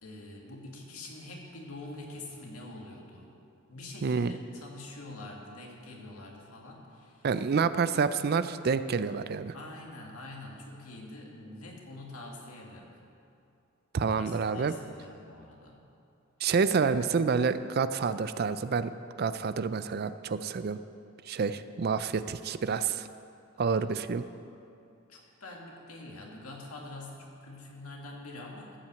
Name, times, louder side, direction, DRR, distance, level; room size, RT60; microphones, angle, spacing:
voice 1, 0.0-3.4 3.7-7.3 9.5-13.0 14.0-15.8 21.5-21.6 23.6-23.8 25.1-28.8, left 2 dB, 85° left, -1 dB, 2.0 m, -45 dB
voice 2, 4.0-4.4 7.2-9.5 13.9-14.7 16.4-18.9 19.2-20.8 21.3-23.1 23.6-24.2, right 5 dB, 45° right, 13 dB, 0.4 m, -28 dB
13.5 x 5.9 x 7.7 m, 2.6 s
head